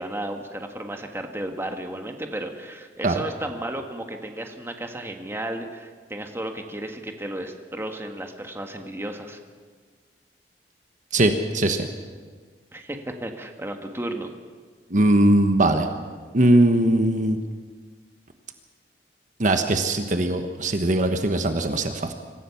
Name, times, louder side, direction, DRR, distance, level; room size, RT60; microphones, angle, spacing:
voice 1, 0.0-9.4 12.7-14.3, right 1 dB, 15° right, 4 dB, 1.6 m, -33 dB
voice 2, 11.1-11.9 14.9-15.9 16.3-17.4 19.4-22.1, right 1 dB, 45° right, 6 dB, 1.3 m, -20 dB
25.5 x 15.0 x 7.1 m, 1.5 s
head